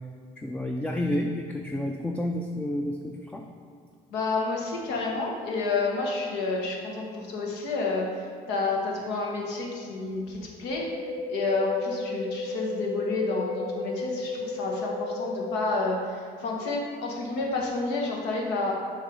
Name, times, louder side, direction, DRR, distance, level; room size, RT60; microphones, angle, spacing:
voice 1, 0.4-3.4, left 1 dB, 10° left, 2 dB, 0.3 m, -30 dB
voice 2, 4.1-10.8 11.3-18.7, left 3 dB, 85° left, -1 dB, 1.2 m, -29 dB
sound 1, 10.7-15.7, left 2 dB, 25° left, 1.4 m, -33 dB
6.3 x 3.3 x 5.0 m, 2.2 s
cardioid pair, 110°, 17 cm